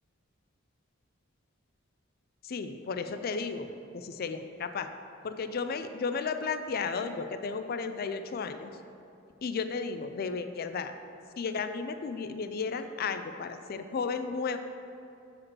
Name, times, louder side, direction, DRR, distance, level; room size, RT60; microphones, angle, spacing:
voice 1, 2.4-3.7 3.9-4.9 5.2-8.7 9.4-10.9 11.4-14.6, left 5 dB, 50° left, 9 dB, 0.4 m, -33 dB
7.8 x 4.9 x 6.0 m, 2.7 s
head